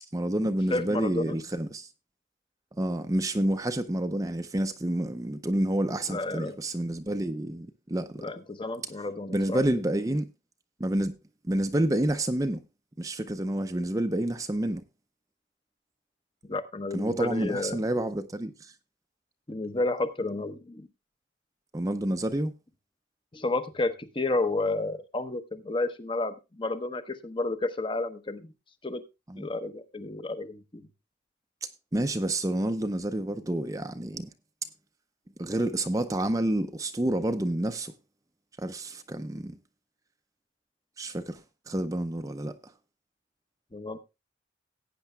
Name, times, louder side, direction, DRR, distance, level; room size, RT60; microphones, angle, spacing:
voice 1, 0.1-1.9 2.8-8.3 9.3-10.3 10.8-11.2 11.4-12.6 13.0-14.8 16.9-18.7 21.7-22.5 29.3-29.5 31.6-34.3 35.4-37.9 38.6-39.6 41.0-41.4 41.7-42.5, right 1 dB, 15° right, 0.5 m, -29 dB
voice 2, 0.7-1.4 6.1-6.6 8.2-9.6 16.5-17.8 19.5-20.9 23.3-28.5 28.8-29.0 29.4-30.8 43.7-44.0, left 2 dB, 25° left, 0.8 m, -31 dB
17.5 x 9.1 x 2.2 m
head